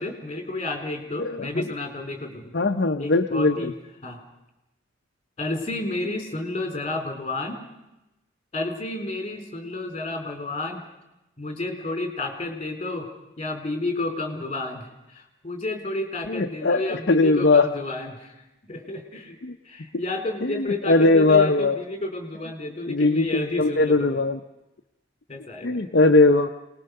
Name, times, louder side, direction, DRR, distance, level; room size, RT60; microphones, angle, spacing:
voice 1, 0.0-2.5 3.0-3.7 4.0-4.2 5.4-7.6 8.5-10.8 11.4-18.4 18.7-19.4 19.6-24.2 25.3-25.8, left 2 dB, 30° left, 5 dB, 4.3 m, -31 dB
voice 2, 1.2-1.6 2.5-3.7 16.3-17.7 19.4-19.5 20.4-21.8 22.9-24.4 25.6-26.5, left 3 dB, 55° left, 4 dB, 0.8 m, -20 dB
28.0 x 20.0 x 6.7 m, 0.95 s
head